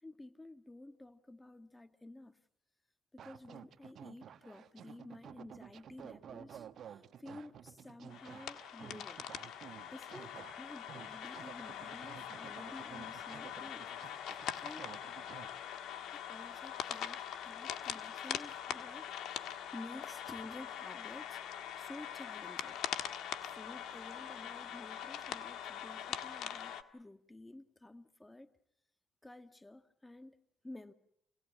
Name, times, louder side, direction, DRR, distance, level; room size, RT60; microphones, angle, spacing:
voice 1, 0.0-2.4 3.1-9.3 9.9-13.9 14.2-14.9 16.1-22.8 23.4-28.5 29.2-30.9, left 2 dB, 15° left, 1.7 m, -52 dB
sound 1, 3.2-15.5, right 9 dB, 65° right, 1.2 m, -52 dB
sound 2, 8.1-26.8, left 9 dB, 85° left, 1.6 m, -43 dB
28.5 x 18.0 x 8.8 m
cardioid pair, 90°, 0 cm